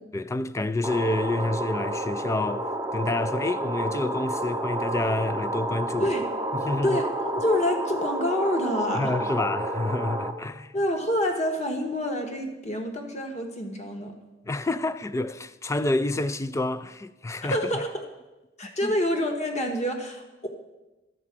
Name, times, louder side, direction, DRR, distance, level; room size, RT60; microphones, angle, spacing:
voice 1, 0.1-6.1 6.5-7.0 8.9-10.7 14.5-17.6 18.8-18.9, left 2 dB, 15° left, 0.3 m, -28 dB
sound 1, 0.8-10.3, right 1 dB, 15° right, 0.7 m, -30 dB
voice 2, 6.8-9.1 10.7-14.1 17.4-18.1 18.6-20.5, equal, 35° left, 1.2 m, -27 dB
12.5 x 4.7 x 7.4 m
head